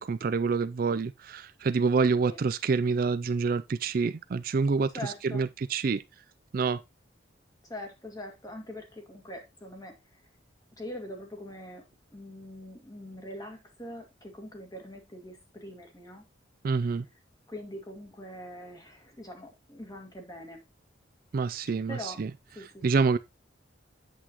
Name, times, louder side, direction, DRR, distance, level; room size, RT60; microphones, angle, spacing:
voice 1, 0.0-6.0 6.5-6.8 16.6-17.1 21.3-22.3 22.8-23.2, right 4 dB, 50° right, 0.4 m, -27 dB
voice 2, 4.9-5.5 7.7-10.2 10.8-11.8 12.1-16.2 17.5-20.6 21.9-22.2 22.6-23.1, left 1 dB, 20° left, 2.1 m, -43 dB
8.3 x 8.0 x 3.0 m
head